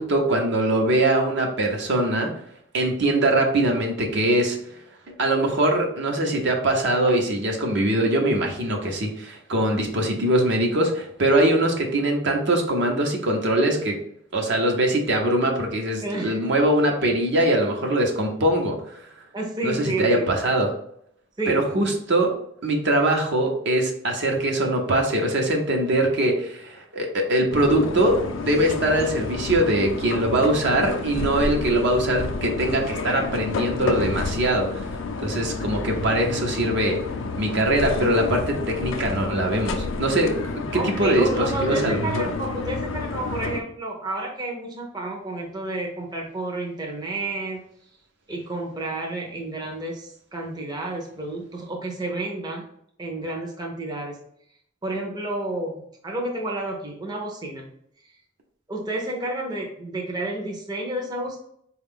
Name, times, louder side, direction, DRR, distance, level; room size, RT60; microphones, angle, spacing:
voice 1, 0.0-2.3 2.7-4.6 5.1-14.0 14.3-18.8 19.6-20.7 21.5-22.3 22.6-34.9 35.2-37.0 37.4-42.0, right 1 dB, 60° right, 2 dB, 0.8 m, -22 dB
voice 2, 16.0-16.4 19.3-20.3 21.4-21.7 40.7-47.6 48.3-52.7 53.0-54.2 54.8-57.7 58.7-61.4, right 2 dB, 20° right, -1 dB, 0.6 m, -30 dB
sound 1, 27.5-43.6, left 4 dB, 65° left, 0.4 m, -30 dB
4.3 x 2.3 x 3.5 m, 0.70 s
head